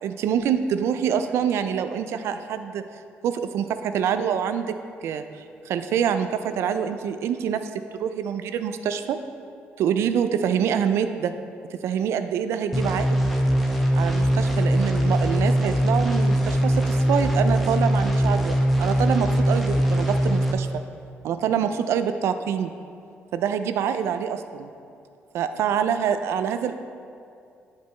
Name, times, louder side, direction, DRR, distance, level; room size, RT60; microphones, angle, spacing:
voice 1, 0.0-2.8 3.2-9.2 9.8-11.3 11.8-13.3 13.9-20.7 21.2-22.7 23.3-24.7 25.3-26.7, right 8 dB, 80° right, 10 dB, 0.3 m, -26 dB
sound 1, 12.7-20.5, right 1 dB, ahead, 0.8 m, -21 dB
9.3 x 4.1 x 3.2 m, 2.4 s
cardioid pair, 75°, 5 cm